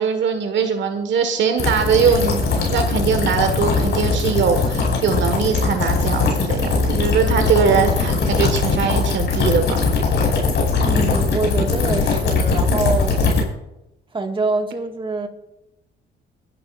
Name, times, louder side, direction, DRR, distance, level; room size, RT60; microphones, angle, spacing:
voice 1, 0.0-9.8, right 6 dB, 70° right, 1.5 m, -21 dB
sound 1, 1.6-13.4, left 4 dB, 65° left, 5.4 m, -20 dB
voice 2, 10.8-13.2 14.1-15.3, right 3 dB, 25° right, 1.7 m, -25 dB
23.0 x 12.0 x 2.5 m
cardioid pair, 90°, 20 cm